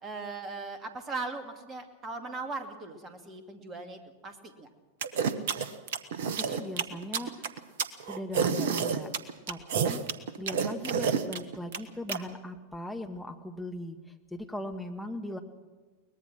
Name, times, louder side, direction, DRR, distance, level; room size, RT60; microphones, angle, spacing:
voice 1, 0.0-4.7 9.8-10.0, right 3 dB, 25° right, 6 dB, 2.6 m, -39 dB
sound 1, 5.0-12.2, right 6 dB, 55° right, 1.2 m, -29 dB
voice 2, 6.2-7.5 8.1-9.1 9.5-10.0 10.4-14.0 14.3-15.4, left 1 dB, ahead, 3 dB, 1.9 m, -39 dB
22.5 x 19.5 x 6.1 m, 1.3 s
figure-of-eight pair, 90°, 0 cm